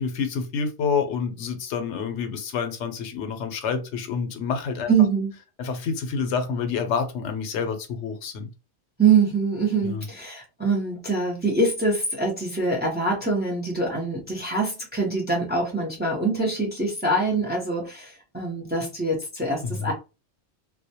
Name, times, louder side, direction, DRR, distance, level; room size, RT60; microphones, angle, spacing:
voice 1, 0.0-4.9 5.6-8.5 9.8-10.1 19.6-19.9, left 6 dB, 80° left, 7 dB, 0.9 m, -28 dB
voice 2, 4.9-5.3 9.0-19.9, right 4 dB, 10° right, -1 dB, 0.5 m, -24 dB
2.2 x 2.1 x 2.7 m, 0.29 s
omnidirectional pair, 1.2 m